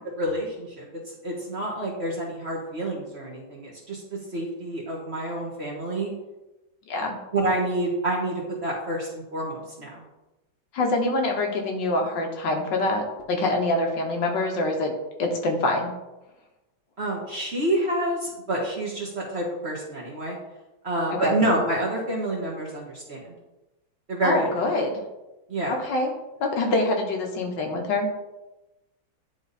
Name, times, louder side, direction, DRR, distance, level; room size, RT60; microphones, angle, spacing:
voice 1, 0.0-6.1 7.3-10.0 17.0-20.4 20.8-23.3 24.1-24.5 25.5-25.7, right 1 dB, 35° right, -3 dB, 1.4 m, -28 dB
voice 2, 10.7-14.9 15.2-15.9 21.1-21.3 24.2-24.9 25.7-26.1 26.4-28.1, left 2 dB, 65° left, 2 dB, 1.6 m, -25 dB
10.5 x 3.5 x 4.1 m, 1.0 s
omnidirectional pair, 2.2 m